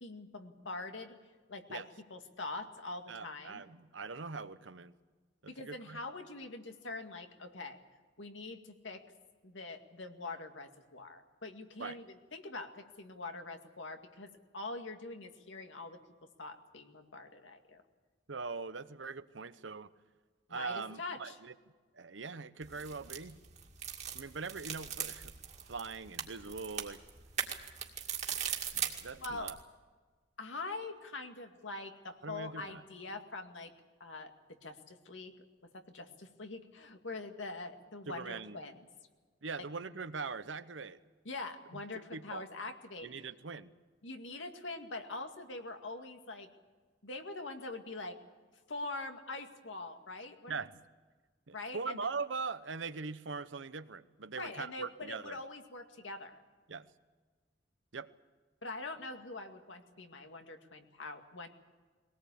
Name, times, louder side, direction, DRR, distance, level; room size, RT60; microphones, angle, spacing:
voice 1, 0.0-1.1 1.5-1.8 2.1-3.6 5.5-7.8 8.2-9.0 9.4-12.1 12.3-16.0 16.4-17.8 20.5-21.4 29.2-29.5 30.4-33.7 34.0-34.3 34.6-35.3 35.9-38.7 41.3-43.3 44.0-46.5 47.0-48.2 48.7-50.6 51.5-52.1 54.3-56.4 58.6-61.5, left 3 dB, 85° left, 5 dB, 2.1 m, -44 dB
voice 2, 3.1-4.9 5.4-6.0 11.8-12.0 18.3-19.9 20.5-21.5 21.9-23.4 24.1-25.3 25.7-27.0 28.3-28.4 28.7-29.6 32.2-32.8 38.1-38.6 39.4-41.0 41.7-42.4 43.0-43.7 50.5-50.8 51.5-55.4 56.7-56.9 57.9-58.1, right 4 dB, 75° right, 13 dB, 0.9 m, -42 dB
sound 1, 22.6-29.6, right 8 dB, 40° right, 2.1 m, -40 dB
22.0 x 18.5 x 8.5 m, 1.4 s
head